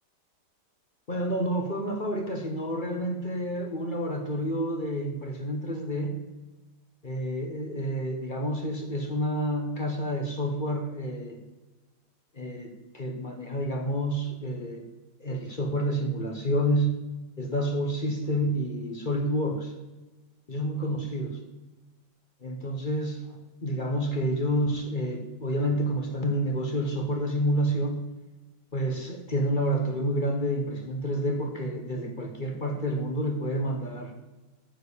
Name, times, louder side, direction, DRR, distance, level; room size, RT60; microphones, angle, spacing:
voice 1, 1.1-6.2 7.0-11.4 12.3-14.8 15.2-17.0 17.4-19.7 20.5-21.4 22.4-28.0 28.7-34.1, equal, 30° left, 4 dB, 1.1 m, -29 dB
9.0 x 7.2 x 7.0 m, 1.1 s
omnidirectional pair, 1.9 m